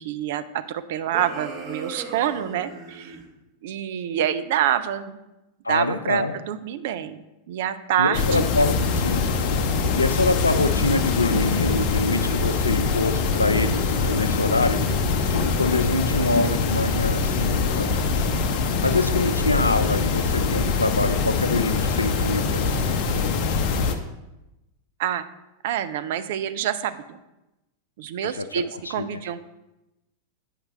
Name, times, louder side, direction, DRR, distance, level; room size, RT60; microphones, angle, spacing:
voice 1, 0.0-3.2 3.6-5.2 5.7-7.2 7.5-8.5 25.0-25.2 25.6-27.2 28.0-29.5, right 10 dB, 55° right, 12 dB, 0.4 m, -27 dB
sound 1, 1.1-3.2, right 3 dB, 35° right, 1.8 m, -38 dB
voice 2, 5.6-6.3 8.0-8.8 9.0-9.2 9.9-14.9 15.3-18.0 18.8-22.7 28.4-28.5 28.7-29.0, left 2 dB, 80° left, 10 dB, 0.4 m, -25 dB
sound 2, 8.1-23.9, left 4 dB, 45° left, 0.7 m, -23 dB
8.2 x 5.7 x 3.3 m, 0.96 s
figure-of-eight pair, 90°, 0 cm